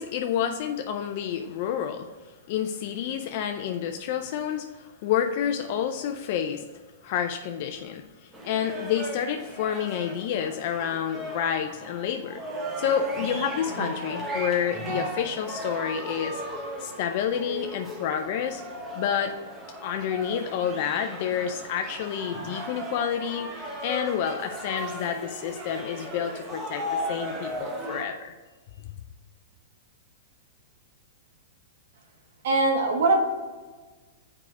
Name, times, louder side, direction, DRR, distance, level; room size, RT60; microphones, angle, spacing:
voice 1, 0.0-6.6 7.0-12.4 12.8-16.4 16.8-18.6 19.0-19.3 19.8-28.4, left 8 dB, 50° left, 6 dB, 0.5 m, -29 dB
Loud party drunk crowd, 8.3-28.1, equal, 15° right, 1.2 m, -36 dB
voice 2, 32.4-33.2, right 3 dB, 70° right, 3 dB, 1.3 m, -21 dB
6.8 x 4.8 x 4.9 m, 1.3 s
hypercardioid pair, 145°, 0 cm